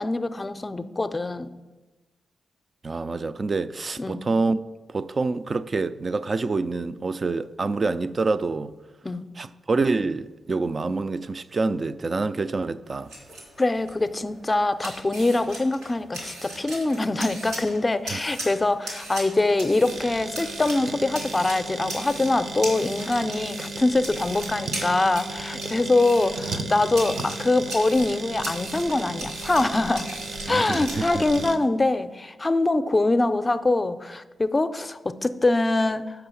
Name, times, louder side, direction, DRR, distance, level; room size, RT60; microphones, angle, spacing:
voice 1, 0.0-1.5 4.0-4.2 9.0-9.2 13.6-30.1 30.5-36.3, left 2 dB, 30° left, 0.5 m, -24 dB
voice 2, 2.8-4.6 4.9-8.7 9.4-13.1 18.1-18.2 30.5-31.3, right 3 dB, 45° right, 0.4 m, -26 dB
sound 1, 12.8-31.4, right 1 dB, 85° right, 2.8 m, -39 dB
sound 2, 19.9-31.6, right 2 dB, 60° right, 0.8 m, -35 dB
5.8 x 5.5 x 6.9 m
supercardioid pair, 45°, 0 cm